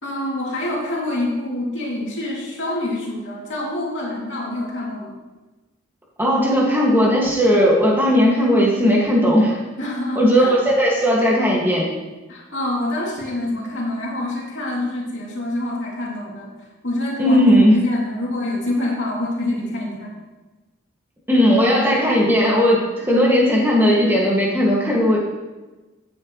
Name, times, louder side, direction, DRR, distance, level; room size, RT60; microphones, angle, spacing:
voice 1, 0.0-5.2 9.8-10.5 12.3-16.5 16.8-17.4 17.7-20.1, left 1 dB, 65° left, -4 dB, 2.9 m, -26 dB
voice 2, 6.2-9.6 10.2-11.9 17.2-17.8 21.3-25.2, equal, 10° right, -3 dB, 2.0 m, -16 dB
12.5 x 9.1 x 3.2 m, 1.2 s
head